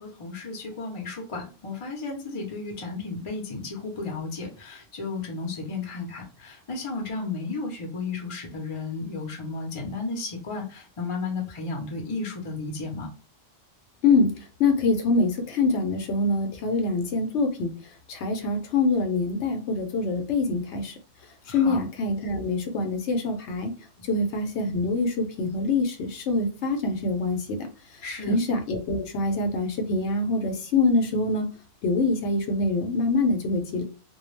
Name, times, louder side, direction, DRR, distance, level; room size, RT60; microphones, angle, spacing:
voice 1, 0.0-13.1 21.5-21.8 28.0-28.3, left 3 dB, 35° left, 0.6 m, -33 dB
voice 2, 14.6-17.7 18.1-20.9 21.5-23.7 24.1-27.4 28.3-31.5 31.8-33.8, left 3 dB, 70° left, 0.9 m, -24 dB
2.3 x 2.2 x 3.1 m
omnidirectional pair, 1.3 m